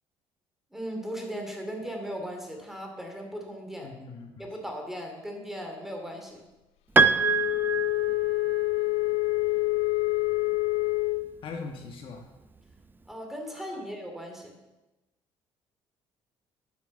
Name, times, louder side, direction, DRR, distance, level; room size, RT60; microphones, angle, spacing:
voice 1, 0.7-3.9 4.4-6.4 13.1-14.5, equal, 5° right, 2 dB, 2.7 m, -37 dB
voice 2, 3.8-4.4 11.4-12.3 13.7-13.8, left 4 dB, 60° left, 3 dB, 1.3 m, -40 dB
Piano, 7.0-8.6, right 4 dB, 20° right, 0.6 m, -24 dB
Wind instrument woodwind instrument, 7.2-11.3, left 21 dB, 80° left, 0.5 m, -27 dB
9.8 x 6.2 x 6.9 m, 1.1 s
cardioid pair, 90°, 10 cm